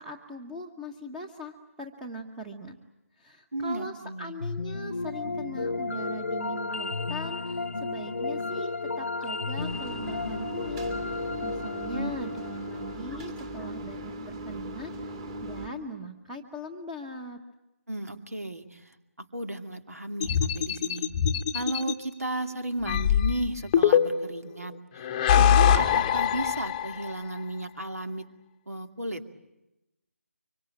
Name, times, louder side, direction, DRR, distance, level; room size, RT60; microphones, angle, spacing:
voice 1, 0.0-2.8 3.2-10.8 11.4-17.4, equal, 5° right, 2 dB, 1.1 m, -40 dB
voice 2, 3.5-4.3 11.9-12.1 13.4-13.5 17.9-21.1 21.5-25.1 25.4-28.2 28.7-29.2, right 1 dB, 80° right, 6 dB, 2.4 m, -34 dB
sound 1, 4.4-13.5, left 3 dB, 65° left, 0.9 m, -33 dB
sound 2, 9.6-15.7, right 1 dB, 25° right, 2.3 m, -38 dB
sound 3, 20.2-21.9 22.9-24.4 25.0-27.2, left 9 dB, 20° left, 0.9 m, -23 dB
25.0 x 24.5 x 8.9 m, 0.94 s
figure-of-eight pair, 150°, 8 cm